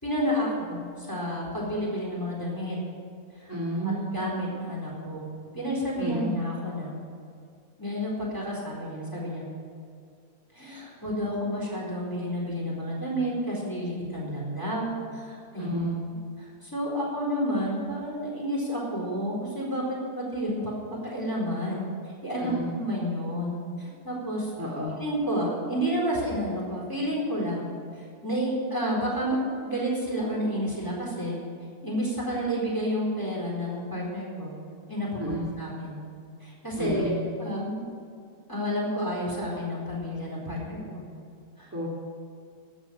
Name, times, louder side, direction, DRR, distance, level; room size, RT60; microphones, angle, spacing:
voice 1, 0.0-2.8 3.4-3.5 3.8-5.3 5.5-6.9 7.8-9.4 10.5-15.7 16.4-20.7 21.0-21.8 22.2-24.5 25.0-27.7 28.2-31.4 31.8-34.5 34.9-36.0 36.4-37.8 38.5-41.0 41.6-41.7, equal, 10° left, -4 dB, 4.2 m, -30 dB
voice 2, 3.5-4.1 6.0-6.3 15.6-16.0 22.4-22.7 24.6-24.9 35.2-35.4 36.8-37.1 41.7-41.9, equal, 10° right, -5 dB, 1.9 m, -30 dB
13.0 x 7.4 x 8.7 m, 2.3 s
omnidirectional pair, 1.7 m